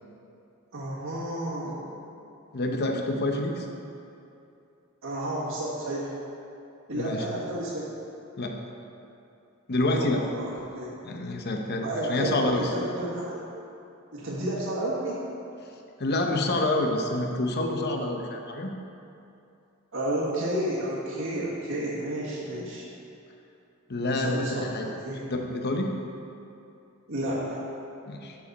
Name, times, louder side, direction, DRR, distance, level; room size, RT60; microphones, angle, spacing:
voice 1, 0.7-1.9 5.0-6.1 6.9-7.8 10.0-10.5 10.7-10.9 11.8-13.4 14.1-15.2 19.9-22.8 24.1-25.3 27.1-27.6, right 1 dB, 70° right, -9 dB, 1.6 m, -31 dB
voice 2, 2.5-3.7 6.9-7.3 8.4-8.6 9.7-10.2 11.0-12.7 16.0-18.7 23.9-25.0 25.3-25.9 28.1-28.4, left 2 dB, 50° left, 2 dB, 0.8 m, -27 dB
12.0 x 5.3 x 4.1 m, 2.7 s
head